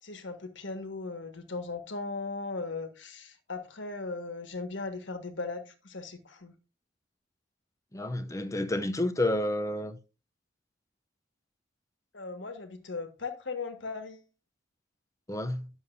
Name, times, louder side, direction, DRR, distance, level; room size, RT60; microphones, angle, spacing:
voice 1, 0.0-6.5 12.1-14.3, left 3 dB, 75° left, 1.6 m, -38 dB
voice 2, 7.9-10.0 15.3-15.7, left 1 dB, 15° left, 0.6 m, -30 dB
11.0 x 7.1 x 2.7 m
head